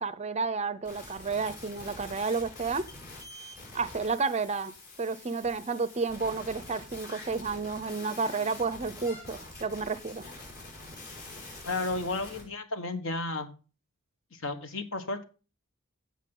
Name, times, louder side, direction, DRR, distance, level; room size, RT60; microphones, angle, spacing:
voice 1, 0.0-2.9 3.7-4.7 5.0-10.2, right 4 dB, 30° right, 15 dB, 0.5 m, -31 dB
sound 1, 0.8-12.4, left 2 dB, 45° left, 5.6 m, -46 dB
voice 2, 11.6-13.5 14.3-15.2, left 2 dB, 60° left, 8 dB, 1.3 m, -33 dB
16.0 x 5.6 x 3.7 m, 0.34 s
head